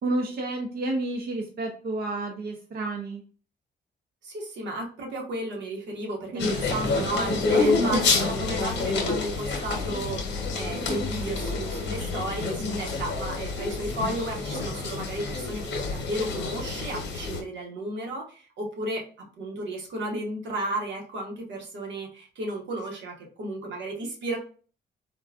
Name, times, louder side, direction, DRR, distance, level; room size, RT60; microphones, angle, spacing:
voice 1, 0.0-3.2 6.3-6.7 7.7-8.0, right 2 dB, 60° right, 2 dB, 0.6 m, -30 dB
voice 2, 4.2-19.0 19.4-24.4, right 1 dB, 90° right, -1 dB, 1.0 m, -33 dB
sound 1, 6.4-17.4, left 4 dB, 85° left, 0.8 m, -28 dB
3.6 x 2.2 x 2.3 m, 0.40 s
cardioid pair, 115°, 18 cm